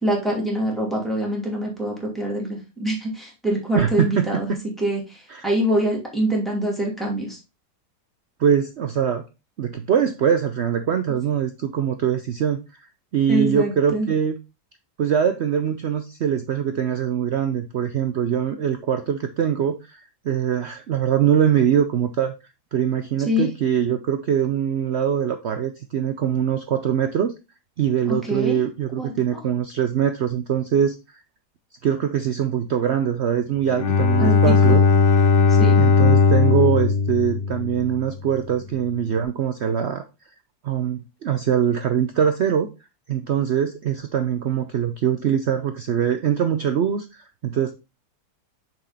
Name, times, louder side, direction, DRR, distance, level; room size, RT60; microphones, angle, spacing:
voice 1, 0.0-7.4 13.3-14.1 23.3-23.5 28.0-28.6 29.0-29.1 34.2-34.8 35.5-35.8, right 1 dB, ahead, -2 dB, 2.4 m, -25 dB
voice 2, 3.7-4.6 5.3-5.5 8.4-9.2 9.6-12.6 13.1-14.4 15.0-22.3 22.7-27.3 27.8-30.9 31.8-34.8 35.7-40.1 40.6-42.7 43.1-47.7, right 8 dB, 90° right, 8 dB, 0.5 m, -23 dB
Bowed string instrument, 33.7-38.2, left 5 dB, 50° left, 0.6 m, -17 dB
6.5 x 4.5 x 4.1 m, 0.27 s
omnidirectional pair, 1.9 m